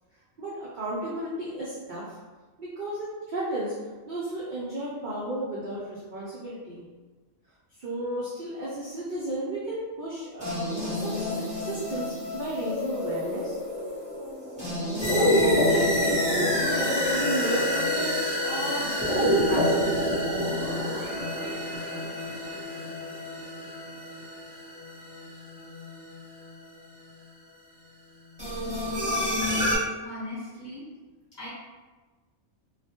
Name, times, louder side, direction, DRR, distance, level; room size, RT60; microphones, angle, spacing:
voice 1, 0.4-2.2 2.6-3.8 4.1-6.8 7.8-13.6 15.1-19.9, right 1 dB, 70° right, -7 dB, 0.4 m, -33 dB
sound 1, 10.4-26.5 28.4-29.8, left 1 dB, 10° right, 0.4 m, -28 dB
voice 2, 30.0-30.8 31.3-31.5, left 1 dB, 40° left, -9 dB, 0.8 m, -38 dB
2.3 x 2.1 x 2.8 m, 1.3 s
omnidirectional pair, 1.4 m